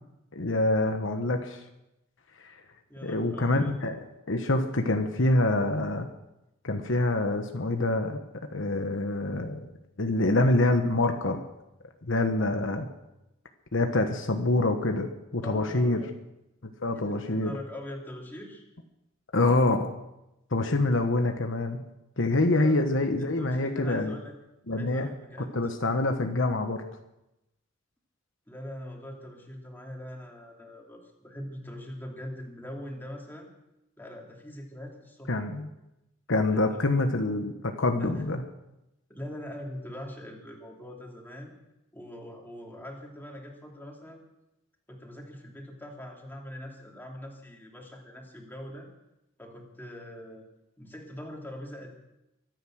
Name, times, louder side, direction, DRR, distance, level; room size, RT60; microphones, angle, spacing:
voice 1, 0.3-1.6 2.4-2.6 3.0-6.1 6.6-8.2 8.5-9.7 10.0-11.4 12.0-12.9 13.7-16.0 16.6-17.5 19.3-19.9 20.5-21.8 22.2-24.1 24.7-25.1 25.5-26.8 35.3-35.7 36.3-38.4, left 2 dB, 65° left, 5 dB, 1.2 m, -26 dB
voice 2, 2.9-3.7 15.4-16.1 16.9-18.6 22.6-22.7 23.4-24.4 24.7-25.6 28.5-33.5 34.0-35.3 36.5-36.8 38.0-38.2 39.1-41.5 41.9-44.2 44.9-48.9 49.4-50.4 50.8-51.9, left 1 dB, 10° left, 0 dB, 3.0 m, -42 dB
24.0 x 9.3 x 6.3 m, 0.91 s
head